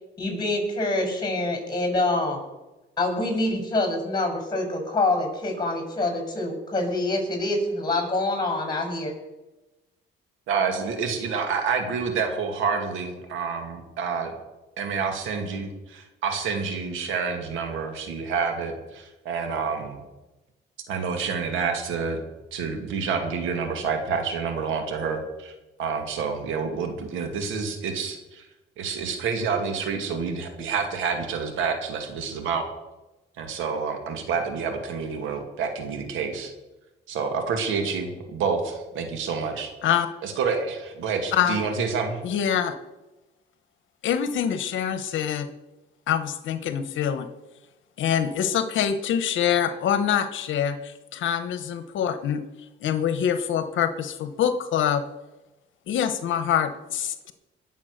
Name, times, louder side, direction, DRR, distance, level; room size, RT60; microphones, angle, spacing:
voice 1, 0.2-2.4 3.0-9.1, left 2 dB, 20° left, 3 dB, 6.8 m, -26 dB
voice 2, 10.5-14.3 14.8-20.1 20.9-22.2 22.5-25.5 25.8-28.4 28.8-32.6 33.4-36.5 37.1-39.7 40.2-42.2, right 5 dB, 90° right, 5 dB, 2.3 m, -28 dB
voice 3, 42.2-42.7 44.0-45.5 46.1-47.3 48.0-52.4 52.8-55.0 55.9-57.3, left 9 dB, 75° left, 10 dB, 1.0 m, -25 dB
20.0 x 7.2 x 6.6 m, 1.1 s
cardioid pair, 90°, 20 cm